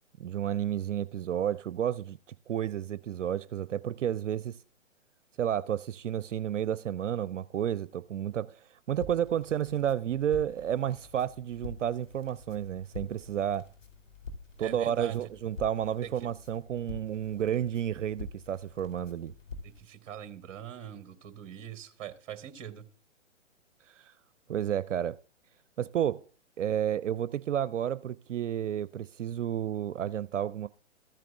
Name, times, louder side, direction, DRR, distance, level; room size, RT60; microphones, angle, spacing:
voice 1, 0.2-2.2 2.5-4.6 5.4-8.6 8.9-13.7 14.6-19.3 24.0-24.1 24.5-25.2 25.8-26.2 26.6-30.7, right 10 dB, 75° right, 0.5 m, -31 dB
Crackle, 8.9-19.8, left 3 dB, 90° left, 2.8 m, -47 dB
voice 2, 14.6-15.3 16.0-16.3 19.6-22.8, right 10 dB, 25° right, 1.1 m, -42 dB
14.0 x 9.1 x 2.4 m
hypercardioid pair, 135°, 37 cm